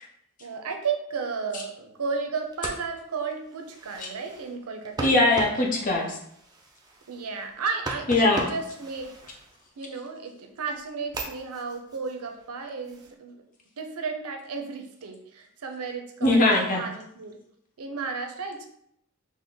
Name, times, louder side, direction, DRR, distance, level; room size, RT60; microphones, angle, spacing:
voice 1, 0.4-5.1 7.1-9.1 9.8-13.4 13.8-17.4 17.8-18.7, right 5 dB, 80° right, 5 dB, 0.5 m, -33 dB
sound 1, 2.4-10.0 10.5-13.1, right 2 dB, 20° right, 0.4 m, -40 dB
voice 2, 5.0-6.2 8.1-8.5 16.2-16.8, left 2 dB, 35° left, 0 dB, 0.7 m, -21 dB
3.5 x 2.1 x 3.8 m, 0.73 s
head